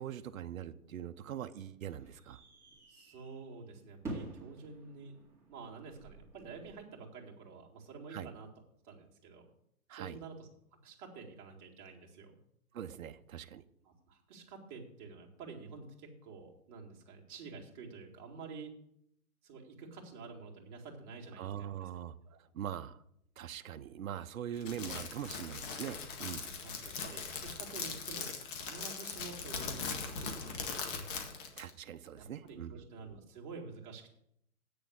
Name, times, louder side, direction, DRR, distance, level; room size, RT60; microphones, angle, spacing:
voice 1, 0.0-2.4 8.1-8.3 9.9-10.2 12.7-13.6 21.4-23.0 23.4-26.4 31.6-32.7, right 10 dB, 65° right, 10 dB, 0.8 m, -42 dB
sound 1, 0.7-6.7, right 2 dB, 5° right, 2.5 m, -49 dB
voice 2, 2.9-5.2 5.5-8.5 8.8-9.5 9.9-12.4 13.8-18.7 19.4-21.9 22.3-22.4 26.3-31.1 32.1-34.1, right 4 dB, 35° right, -1 dB, 2.3 m, -49 dB
Crackle, 24.6-31.7, left 5 dB, 35° left, 1.8 m, -40 dB
8.6 x 6.8 x 7.8 m, 0.73 s
hypercardioid pair, 145°, 44 cm